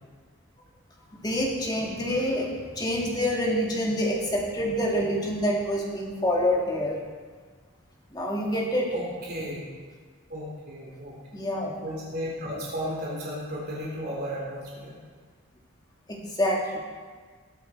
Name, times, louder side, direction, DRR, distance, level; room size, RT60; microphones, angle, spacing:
voice 1, 1.1-2.5 2.8-6.9 8.1-8.9 11.3-11.7 16.1-16.8, equal, 20° left, -2 dB, 2.2 m, -26 dB
voice 2, 8.9-9.6 10.3-11.5 11.8-15.0, equal, 45° right, -5 dB, 3.6 m, -34 dB
20.0 x 9.1 x 4.5 m, 1.5 s
head